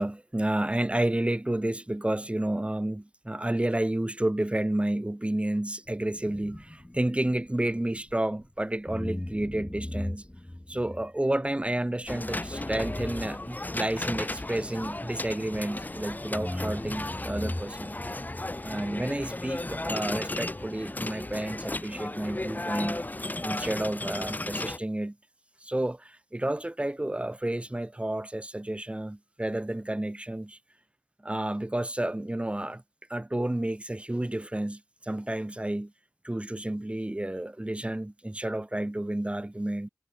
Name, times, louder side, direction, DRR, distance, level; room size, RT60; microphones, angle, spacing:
voice 1, 0.0-10.2 10.7-18.0 18.6-23.0 23.4-25.1 25.6-30.6 31.2-32.8 33.1-35.9 36.2-39.9, right 1 dB, 20° right, 1.5 m, -31 dB
sound 1, 5.9-8.5 8.9-15.9 16.3-19.1, left 1 dB, 15° left, 0.7 m, -40 dB
sound 2, 12.1-24.8, left 2 dB, 30° left, 1.5 m, -35 dB
wide cardioid pair, 55°, 6 cm